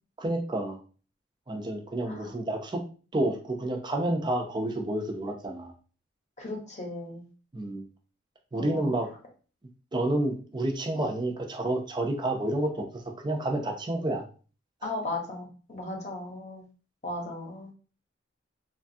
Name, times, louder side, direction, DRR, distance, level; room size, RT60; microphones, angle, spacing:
voice 1, 0.2-0.8 1.5-2.8 3.1-5.7 7.5-7.8 8.5-9.1 9.9-14.2, right 1 dB, 25° right, 2 dB, 0.4 m, -29 dB
voice 2, 6.4-7.2 8.5-8.9 14.8-16.6 17.0-17.7, left 2 dB, 40° left, 0 dB, 0.8 m, -36 dB
3.1 x 2.3 x 2.6 m, 0.38 s
head